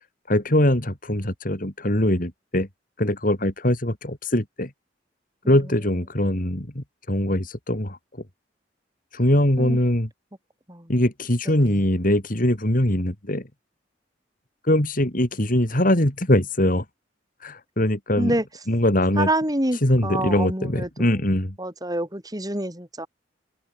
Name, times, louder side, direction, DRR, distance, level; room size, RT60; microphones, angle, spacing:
voice 1, 0.3-2.7 3.0-4.7 5.5-8.0 9.1-10.1 10.9-13.5 14.7-16.8 17.4-18.3 18.7-19.3 19.8-21.6, left 1 dB, 45° left, 3.6 m, -22 dB
voice 2, 19.2-21.2 21.6-23.1, right 1 dB, 20° right, 6.3 m, -27 dB
open air
head